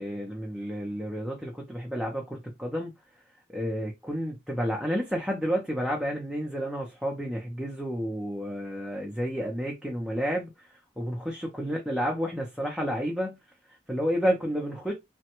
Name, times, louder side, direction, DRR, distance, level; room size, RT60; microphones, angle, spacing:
voice 1, 0.0-2.9 3.5-13.4 13.7-14.9, equal, ahead, 0.5 m, -31 dB
3.2 x 2.1 x 2.9 m
head